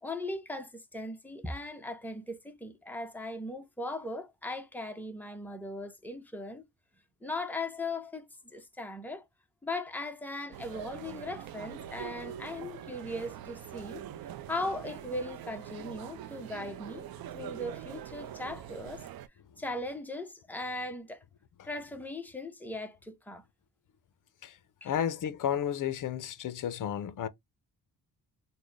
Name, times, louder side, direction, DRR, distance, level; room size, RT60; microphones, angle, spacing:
voice 1, 0.0-6.6 7.2-9.2 9.6-14.0 14.5-17.1 17.3-19.0 19.6-21.2 21.6-23.4 24.8-24.9, left 2 dB, 5° left, 0.7 m, -38 dB
sound 1, 10.5-19.3, right 11 dB, 65° right, 0.5 m, -44 dB
voice 2, 24.8-27.3, left 9 dB, 50° left, 0.6 m, -32 dB
4.0 x 2.1 x 3.2 m
cardioid pair, 120°, 39 cm